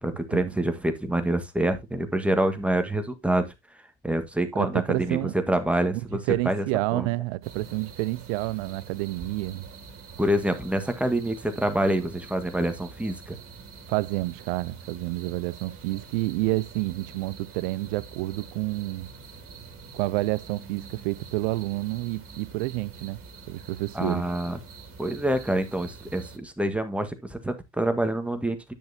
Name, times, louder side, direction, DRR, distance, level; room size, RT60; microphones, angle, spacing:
voice 1, 0.0-3.5 4.0-6.2 6.4-6.6 6.9-7.1 10.2-13.4 23.9-24.6 25.0-28.6, right 1 dB, 5° right, 1.6 m, -26 dB
voice 2, 4.6-5.3 6.3-9.6 13.9-19.1 19.9-23.2 23.5-24.3, right 20 dB, 70° right, 0.6 m, -29 dB
sound 1, 7.4-26.4, right 5 dB, 40° right, 2.5 m, -45 dB
10.5 x 6.3 x 2.8 m
hypercardioid pair, 80°, 33 cm